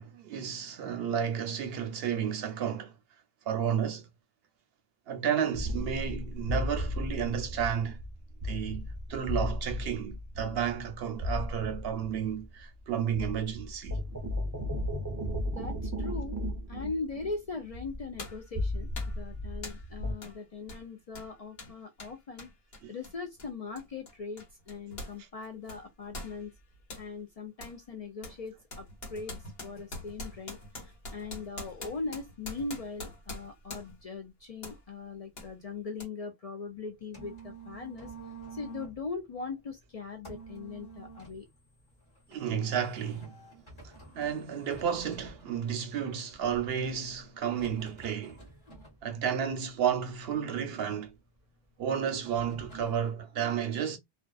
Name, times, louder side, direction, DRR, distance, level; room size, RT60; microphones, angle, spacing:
voice 1, 0.0-2.9 3.5-4.1 5.1-8.0 8.4-14.0 22.8-22.9 42.3-43.4 43.8-48.4 49.0-51.1 51.8-54.0, right 8 dB, 75° right, 0.8 m, -32 dB
sound 1, 5.5-12.8 13.1-20.1, left 1 dB, 25° right, 0.4 m, -35 dB
voice 2, 15.5-16.4 16.7-22.5 22.9-26.5 27.0-38.1 38.5-41.5, left 4 dB, 55° left, 0.4 m, -40 dB
sound 2, 17.3-17.4 18.2-18.5 19.0-19.2 19.6-19.9 20.2-20.4 20.7-25.2 25.4-27.1 27.6-27.8 28.2-34.1 34.6-34.8 35.4-35.5 36.0-36.1, left 2 dB, 75° left, 1.3 m, -44 dB
sound 3, 36.7-53.1, right 4 dB, 30° left, 1.1 m, -51 dB
2.4 x 2.3 x 2.3 m
omnidirectional pair, 1.1 m